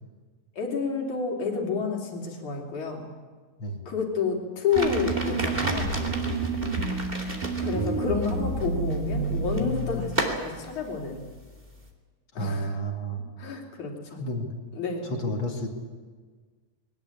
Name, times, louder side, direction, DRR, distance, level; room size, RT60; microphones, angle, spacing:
voice 1, 0.6-3.1 3.9-6.0 7.6-11.2 12.4-12.8 13.4-14.2 14.8-15.1, left 5 dB, 65° left, 1 dB, 4.3 m, -30 dB
sound 1, 4.7-11.9, right 1 dB, 15° right, 2.3 m, -35 dB
sound 2, 4.8-10.1, right 3 dB, 90° right, 5.1 m, -29 dB
voice 2, 12.3-13.3 14.1-14.5 15.0-15.7, right 1 dB, 40° left, 2 dB, 3.0 m, -31 dB
21.5 x 19.0 x 8.6 m, 1.5 s
omnidirectional pair, 3.8 m